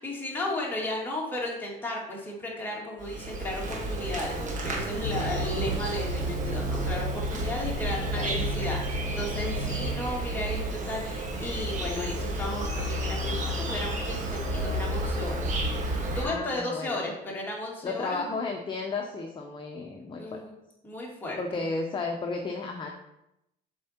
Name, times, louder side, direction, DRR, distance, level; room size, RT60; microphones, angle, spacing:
voice 1, 0.0-15.4 16.1-18.3 20.2-20.6 20.8-21.4, left 1 dB, 10° left, -4 dB, 2.3 m, -34 dB
Insect, 3.0-16.3, right 1 dB, 45° right, 1.4 m, -31 dB
sound 1, 5.0-10.2 10.8-10.9, left 1 dB, 60° left, 1.0 m, -34 dB
voice 2, 16.2-17.0 17.8-20.4 21.4-22.9, left 3 dB, 30° left, 2 dB, 0.8 m, -33 dB
7.3 x 4.4 x 4.5 m, 0.87 s
cardioid pair, 110°, 17 cm